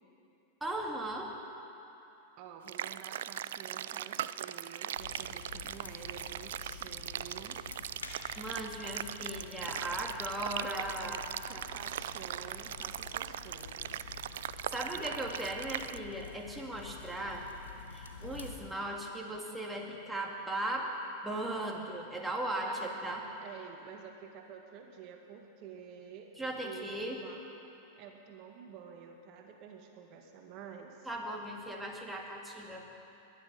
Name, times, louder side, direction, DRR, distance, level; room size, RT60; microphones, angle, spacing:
voice 1, 0.6-1.3 8.4-11.2 14.7-17.4 17.9-20.9 21.2-23.2 26.4-27.2 31.1-32.8, right 1 dB, 5° right, -1 dB, 2.4 m, -37 dB
voice 2, 2.4-7.6 11.5-14.1 14.9-15.2 22.6-22.9 23.4-26.3 26.6-27.4 28.0-31.1, right 7 dB, 50° right, 3 dB, 1.8 m, -49 dB
sound 1, 2.7-16.0, right 11 dB, 70° right, 0.3 m, -40 dB
sound 2, 5.0-18.5, left 5 dB, 85° left, 1.4 m, -49 dB
21.0 x 11.0 x 5.4 m, 2.9 s
hypercardioid pair, 100°, 0 cm